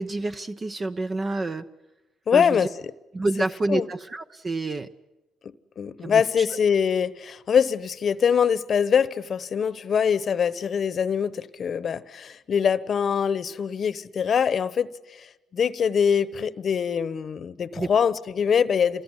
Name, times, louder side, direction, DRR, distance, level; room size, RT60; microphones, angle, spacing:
voice 1, 0.0-1.6 2.3-2.7 3.1-4.9 6.0-6.4 17.8-17.9, right 2 dB, 35° right, 0.9 m, -28 dB
voice 2, 2.3-2.7 3.7-3.9 5.4-19.0, left 7 dB, 55° left, 1.0 m, -23 dB
27.0 x 20.5 x 9.8 m
supercardioid pair, 70°, 0 cm